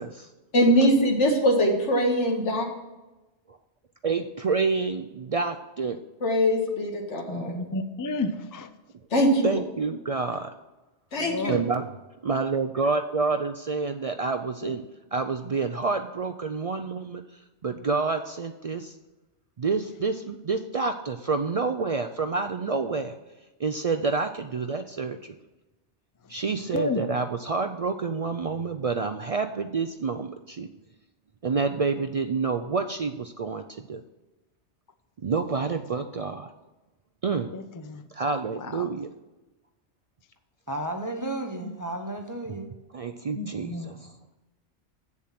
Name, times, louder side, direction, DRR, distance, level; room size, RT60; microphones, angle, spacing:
voice 1, 0.5-2.7 6.2-7.5 9.1-9.5 11.1-11.5, equal, 80° left, 1 dB, 1.9 m, -22 dB
voice 2, 4.0-6.0 9.4-10.6 11.5-11.9 12.2-14.9 15.1-18.9 19.6-23.1 23.6-25.4 26.3-30.7 31.4-34.0 35.2-36.5 37.2-37.5 38.1-39.1 42.9-44.1, right 4 dB, 65° right, 7 dB, 0.3 m, -28 dB
voice 3, 7.3-8.7 11.2-11.6 26.7-27.0 37.5-38.0 41.6-41.7 43.4-43.9, left 2 dB, 30° left, 9 dB, 0.4 m, -31 dB
voice 4, 40.7-42.7, right 1 dB, 20° right, 4 dB, 0.7 m, -33 dB
7.8 x 7.2 x 5.7 m, 1.1 s
omnidirectional pair, 1.2 m